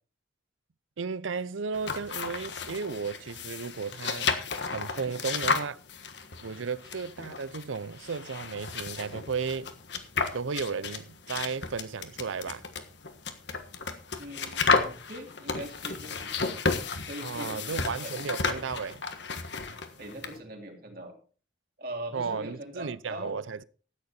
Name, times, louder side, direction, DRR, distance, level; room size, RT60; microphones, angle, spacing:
voice 1, 1.0-4.3 4.7-5.8 6.4-9.7 10.3-12.6 17.2-19.0 22.1-23.6, right 5 dB, 90° right, 0.6 m, -34 dB
sound 1, 1.7-20.4, left 4 dB, 65° left, 1.5 m, -33 dB
voice 2, 14.2-16.6 17.1-18.2 20.0-21.1 21.8-23.4, right 1 dB, 50° right, 2.7 m, -41 dB
13.5 x 9.6 x 4.4 m
head